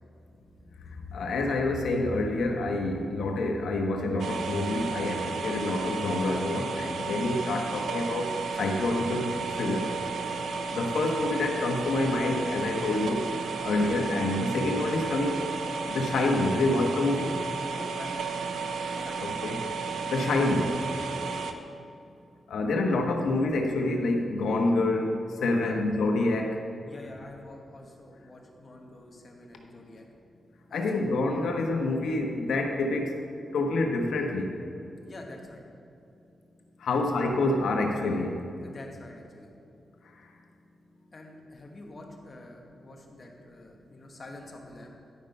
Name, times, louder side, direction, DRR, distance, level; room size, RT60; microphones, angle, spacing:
voice 1, 0.8-8.3 8.6-9.9 10.7-13.3 13.6-15.4 15.9-17.3 19.2-19.7 20.1-20.8 22.5-26.6 30.7-33.2 33.5-34.6 36.8-38.4, left 2 dB, 90° left, 2 dB, 1.0 m, -27 dB
sound 1, 4.2-21.5, right 4 dB, 85° right, 0.6 m, -33 dB
voice 2, 17.7-19.3 21.1-21.4 25.6-25.8 26.8-30.1 30.7-31.0 35.0-35.6 36.8-37.2 38.6-39.5 41.1-44.9, left 2 dB, 40° left, 1 dB, 1.3 m, -47 dB
11.0 x 5.4 x 5.4 m, 2.7 s
wide cardioid pair, 105°, 0 cm